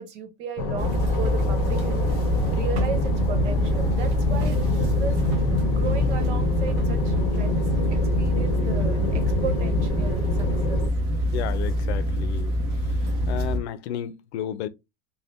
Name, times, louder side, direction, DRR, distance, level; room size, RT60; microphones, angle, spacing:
voice 1, 0.0-2.2 2.5-10.8, right 6 dB, 85° right, 1.1 m, -35 dB
sound 1, 0.6-10.9, left 3 dB, 35° left, 0.7 m, -27 dB
sound 2, 0.8-13.6, equal, 20° right, 0.4 m, -25 dB
voice 2, 11.3-12.5 13.0-14.7, left 10 dB, 70° left, 0.5 m, -32 dB
3.4 x 2.3 x 2.6 m
supercardioid pair, 170°, 34 cm